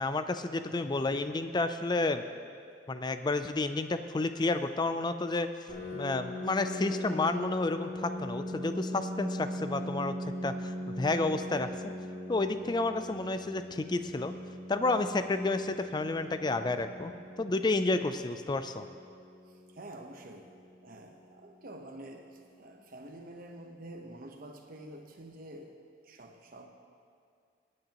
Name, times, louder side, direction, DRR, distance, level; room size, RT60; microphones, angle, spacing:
voice 1, 0.0-2.2 2.9-5.5 5.9-10.2 10.4-11.9 12.3-14.3 14.7-17.1 17.4-18.9, left 2 dB, 25° left, 10 dB, 0.4 m, -30 dB
Piano, 5.7-21.1, left 1 dB, 65° left, 2.6 m, -40 dB
voice 2, 19.5-20.5 20.8-25.8 26.0-26.7, right 1 dB, 50° right, 3 dB, 1.0 m, -48 dB
18.0 x 9.5 x 3.0 m, 2.2 s
head